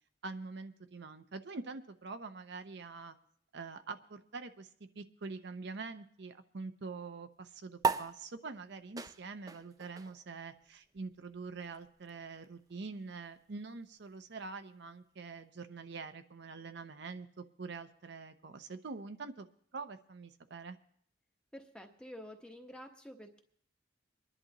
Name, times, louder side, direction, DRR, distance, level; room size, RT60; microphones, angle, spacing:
voice 1, 0.2-3.2 3.5-19.5 19.7-20.8, right 4 dB, 60° right, 8 dB, 0.7 m, -45 dB
sound 1, 7.8-14.6, right 5 dB, 20° right, 0.4 m, -40 dB
voice 2, 21.5-23.4, equal, 5° left, 3 dB, 1.1 m, -49 dB
24.5 x 11.0 x 2.9 m, 0.63 s
head